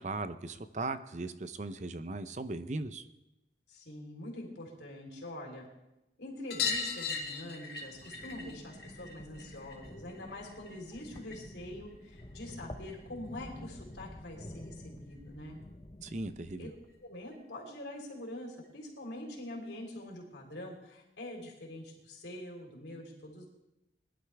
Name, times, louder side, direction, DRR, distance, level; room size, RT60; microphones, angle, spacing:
voice 1, 0.0-3.0 16.0-16.7, right 2 dB, 40° right, 11 dB, 0.7 m, -38 dB
voice 2, 3.7-5.7 6.2-15.6 16.6-16.7 17.0-23.5, left 1 dB, 80° left, -1 dB, 3.7 m, -45 dB
sound 1, 6.5-11.6 11.9-13.0 14.4-14.5 14.7-14.8 15.1-15.2 16.5-16.6 16.9-17.0 17.3-17.4 18.6-18.7 19.5-19.6, left 5 dB, 60° left, 2.1 m, -39 dB
sound 2, 7.8-17.0, left 1 dB, 30° left, 0.8 m, -49 dB
21.0 x 11.5 x 3.5 m, 0.95 s
head